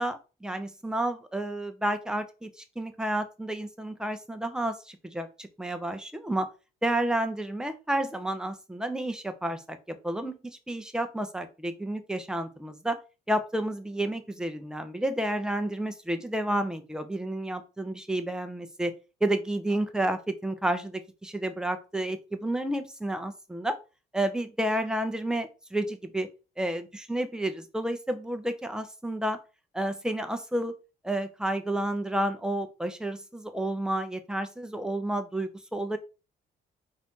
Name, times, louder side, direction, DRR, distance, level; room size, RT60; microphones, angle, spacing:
voice 1, 0.0-6.5 6.8-13.0 13.3-18.9 19.2-23.7 24.1-26.3 26.6-29.4 29.7-30.7 31.0-36.0, right 1 dB, 5° right, 8 dB, 0.6 m, -31 dB
4.2 x 2.7 x 3.6 m, 0.31 s
cardioid pair, 90°, 20 cm